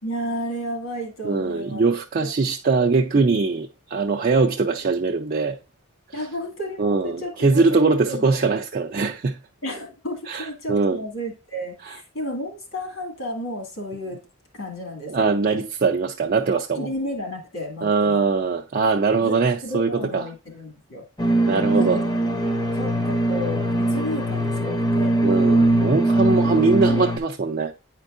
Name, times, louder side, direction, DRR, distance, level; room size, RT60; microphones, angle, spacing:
voice 1, 0.0-1.8 2.2-2.3 2.8-2.9 6.1-8.2 9.6-14.2 14.5-15.3 16.8-18.2 19.2-21.0 21.7-22.1 22.7-25.2 26.2-27.1, equal, 65° left, 2.3 m, -32 dB
voice 2, 1.2-5.6 6.8-9.4 10.3-11.0 15.1-16.9 17.8-20.2 21.5-22.0 25.2-27.7, right 4 dB, 40° right, 0.4 m, -21 dB
sound 1, 21.2-27.2, right 1 dB, 20° left, 0.7 m, -21 dB
9.0 x 4.5 x 2.5 m
head